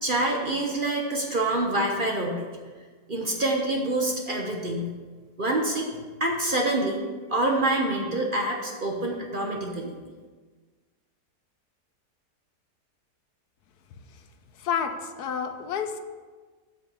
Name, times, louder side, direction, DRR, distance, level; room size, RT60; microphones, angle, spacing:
voice 1, 0.0-2.5 3.1-4.9 5.4-7.0 7.3-9.9, right 1 dB, 35° right, 0 dB, 1.0 m, -26 dB
voice 2, 14.6-16.0, left 7 dB, 75° left, 8 dB, 1.2 m, -30 dB
7.7 x 5.7 x 7.0 m, 1.4 s
omnidirectional pair, 1.8 m